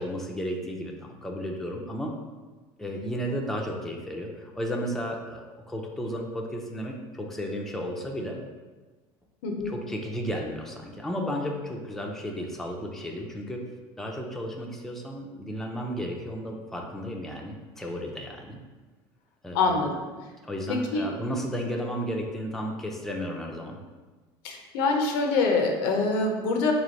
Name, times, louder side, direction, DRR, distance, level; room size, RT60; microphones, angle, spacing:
voice 1, 0.0-2.1 2.8-8.4 9.6-13.6 14.0-18.6 19.4-19.7 20.4-23.8, equal, 5° left, 0 dB, 0.5 m, -33 dB
voice 2, 19.5-20.1 20.7-21.2 24.4-26.7, left 3 dB, 85° left, 3 dB, 0.7 m, -25 dB
3.1 x 3.0 x 4.0 m, 1.3 s
supercardioid pair, 115°, 12 cm